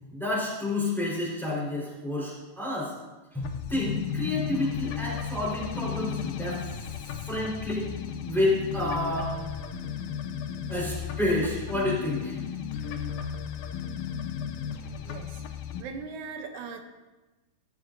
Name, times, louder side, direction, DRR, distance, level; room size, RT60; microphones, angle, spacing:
voice 1, 0.0-2.9 3.3-6.6 7.3-7.9 8.2-9.4 10.7-12.4, left 1 dB, ahead, -6 dB, 3.9 m, -29 dB
sound 1, 3.4-15.8, left 8 dB, 80° left, 2.0 m, -34 dB
voice 2, 15.0-15.4 15.8-16.8, right 5 dB, 85° right, 5 dB, 2.3 m, -39 dB
15.0 x 12.5 x 2.7 m, 1.1 s
omnidirectional pair, 3.3 m